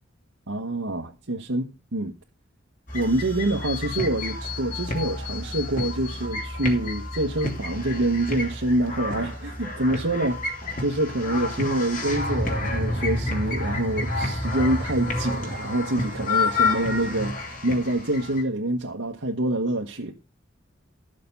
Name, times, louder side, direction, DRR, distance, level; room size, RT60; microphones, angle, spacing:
voice 1, 0.5-2.1 2.9-20.1, right 1 dB, 85° right, 1.4 m, -26 dB
sound 1, 2.9-18.4, left 2 dB, 45° left, 3.3 m, -29 dB
13.5 x 6.8 x 5.4 m
head